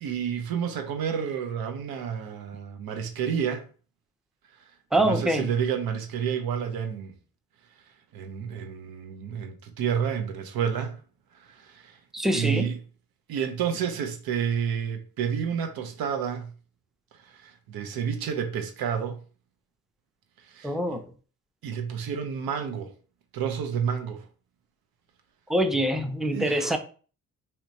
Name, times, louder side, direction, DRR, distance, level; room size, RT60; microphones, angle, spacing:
voice 1, 0.0-3.7 5.0-7.1 8.1-11.0 11.4-12.0 12.3-12.8 13.3-16.5 17.2-19.2 20.5-21.0 21.6-22.9 23.3-24.3 26.3-26.8, right 7 dB, 85° right, 0.6 m, -30 dB
voice 2, 4.9-5.5 12.1-12.7 20.6-21.0 25.5-26.8, right 1 dB, ahead, 0.4 m, -24 dB
3.2 x 2.9 x 2.6 m
cardioid pair, 65°, 35 cm